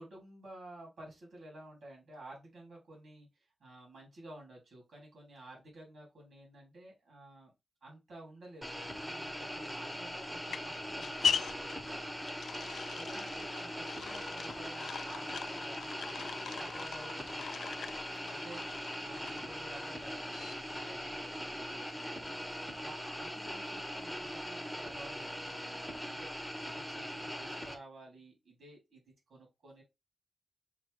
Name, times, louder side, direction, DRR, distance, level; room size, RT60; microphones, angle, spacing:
voice 1, 0.0-3.3 3.6-7.5 7.8-12.1 12.5-22.4 22.7-29.8, right 1 dB, 75° right, -1 dB, 2.7 m, -53 dB
sound 1, 8.6-27.7, equal, 5° right, 0.8 m, -41 dB
sound 2, 9.7-20.9, left 6 dB, 90° left, 0.3 m, -41 dB
6.6 x 2.3 x 3.2 m, 0.23 s
wide cardioid pair, 140°, 0 cm